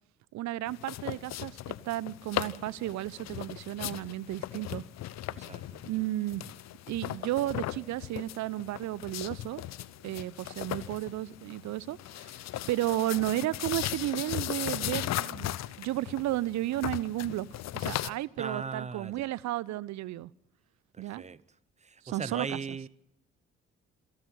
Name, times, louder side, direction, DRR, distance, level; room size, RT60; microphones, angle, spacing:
voice 1, 0.3-4.8 5.8-6.5 6.9-9.6 10.0-12.4 12.7-15.5 15.8-17.5 17.7-20.3 21.0-21.2 22.0-22.8, right 15 dB, 55° right, 0.8 m, -33 dB
sound 1, 0.7-18.1, left 13 dB, 50° left, 0.8 m, -37 dB
voice 2, 5.3-5.7 18.4-19.3 20.9-21.4 22.1-22.9, right 5 dB, 20° right, 0.9 m, -38 dB
27.5 x 11.5 x 9.5 m
figure-of-eight pair, 45°, 33 cm